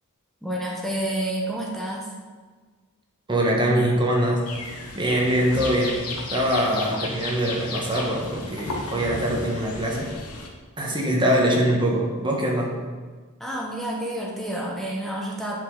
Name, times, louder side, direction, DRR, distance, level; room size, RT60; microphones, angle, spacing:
voice 1, 0.4-2.1 13.4-15.6, right 1 dB, ahead, -3 dB, 0.9 m, -29 dB
voice 2, 3.3-4.4 4.9-6.0 6.3-10.1 10.8-12.8, right 1 dB, 20° right, -1 dB, 1.3 m, -23 dB
sound 1, 4.5-10.5, left 2 dB, 90° left, 1.1 m, -34 dB
9.2 x 5.0 x 3.9 m, 1.4 s
head